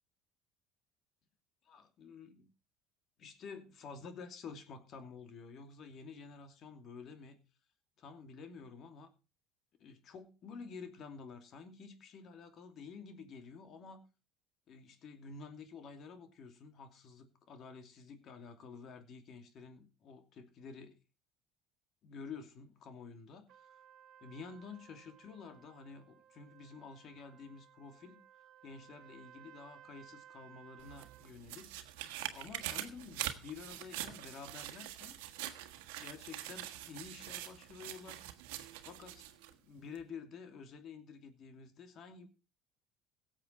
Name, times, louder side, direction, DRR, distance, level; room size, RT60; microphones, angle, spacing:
voice 1, 1.6-2.5 3.2-7.4 8.0-9.1 9.8-14.0 14.7-20.9 22.0-23.5 24.2-28.2 28.6-31.7 32.3-35.2 36.0-38.2 38.8-42.3, left 5 dB, 50° left, 7 dB, 2.7 m, -50 dB
Trumpet, 23.5-31.3, right 10 dB, 60° right, 1.4 m, -60 dB
sound 1, 30.8-39.5 39.9-40.0, right 13 dB, 85° right, 1.4 m, -44 dB
17.0 x 7.5 x 4.5 m, 0.31 s
supercardioid pair, 95°, 0 cm